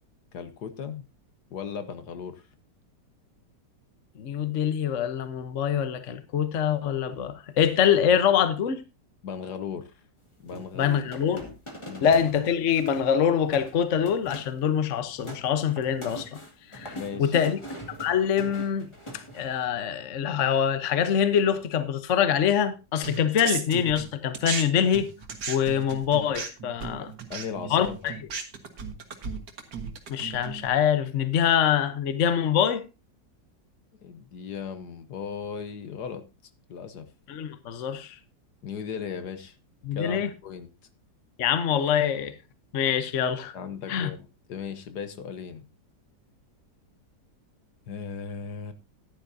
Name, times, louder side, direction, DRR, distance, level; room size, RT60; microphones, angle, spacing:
voice 1, 0.3-1.0 1.5-2.4 9.2-9.9 10.4-11.0 11.9-12.2 16.9-17.4 27.0-28.1 34.0-36.2 36.7-37.1 38.6-39.5 39.9-40.7 43.5-45.6 47.9-48.7, left 6 dB, 65° left, 1.5 m, -37 dB
voice 2, 4.2-8.8 10.7-11.5 12.0-16.4 16.7-17.6 18.0-18.9 19.3-25.1 25.5-27.1 27.7-28.2 30.1-32.8 37.3-38.1 39.8-40.3 41.4-42.3 42.7-43.5 43.9-44.1, left 8 dB, 50° left, 1.1 m, -24 dB
sound 1, 10.4-12.3 12.6-13.1 13.4-13.7 14.0-14.6 14.9-19.7, equal, 15° left, 2.1 m, -42 dB
sound 2, 23.0-24.6 24.9-30.7, right 6 dB, 65° right, 2.0 m, -35 dB
14.5 x 10.5 x 2.7 m
omnidirectional pair, 1.9 m